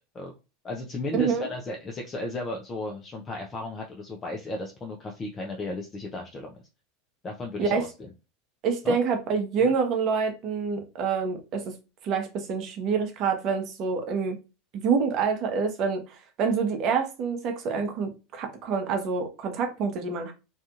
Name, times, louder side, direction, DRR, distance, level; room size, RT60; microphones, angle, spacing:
voice 1, 0.6-6.6 7.2-8.1 8.8-9.0 9.6-9.7, left 2 dB, 30° left, 0.5 m, -35 dB
voice 2, 8.6-11.6 12.0-14.4 14.7-16.0 16.4-20.3, right 5 dB, 50° right, 0.7 m, -27 dB
2.7 x 2.4 x 2.4 m
hypercardioid pair, 85°, 0 cm